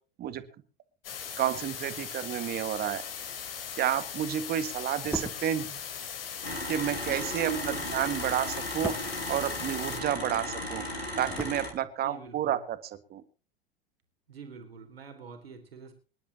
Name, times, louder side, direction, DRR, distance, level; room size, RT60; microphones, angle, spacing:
sound 1, 1.0-10.0, left 8 dB, 65° left, 3.0 m, -39 dB
voice 1, 1.4-3.0 3.8-5.7 6.7-8.9 9.3-10.9 11.2-13.2, right 11 dB, 30° right, 12 dB, 1.8 m, -30 dB
sound 2, 4.9-10.2 10.5-12.3 12.6-12.8, right 2 dB, 5° right, 2.1 m, -41 dB
sound 3, 6.4-11.7, left 1 dB, 85° left, 5.3 m, -36 dB
voice 2, 7.4-7.9 12.0-12.6 14.3-15.9, right 7 dB, 75° right, 5 dB, 3.5 m, -41 dB
25.5 x 11.5 x 2.9 m, 0.37 s
figure-of-eight pair, 85°, 31 cm